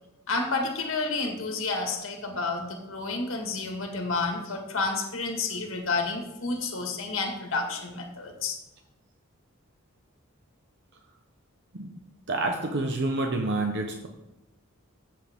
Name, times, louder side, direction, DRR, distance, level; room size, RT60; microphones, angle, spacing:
voice 1, 0.3-8.6, left 3 dB, 65° left, 3 dB, 1.9 m, -30 dB
voice 2, 12.3-14.1, right 2 dB, 55° right, 3 dB, 1.0 m, -28 dB
14.5 x 7.5 x 3.6 m, 0.95 s
head